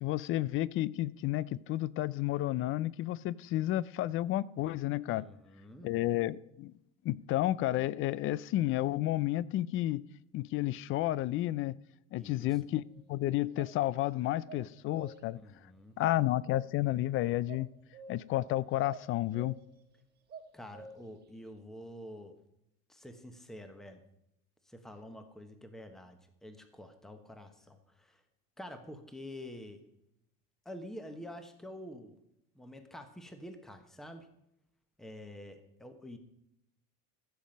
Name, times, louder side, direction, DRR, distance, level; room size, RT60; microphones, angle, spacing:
voice 1, 0.0-5.3 5.8-6.7 7.0-10.0 10.3-11.7 12.1-12.8 13.1-15.4 16.0-17.7 18.1-19.5, left 15 dB, 40° left, 0.4 m, -31 dB
voice 2, 5.1-5.9 12.1-12.6 15.3-16.0 20.5-22.4 22.9-24.0 24.7-28.2 28.6-29.8 30.6-32.2 32.5-34.3 35.0-36.2, left 1 dB, ahead, 1.0 m, -48 dB
sound 1, 12.9-13.0 13.5-13.7 14.5-15.4 16.0-17.0 17.5-18.5 18.8-19.8 20.3-21.2, right 4 dB, 30° right, 1.2 m, -50 dB
15.0 x 7.4 x 5.1 m
cardioid pair, 140°, 33 cm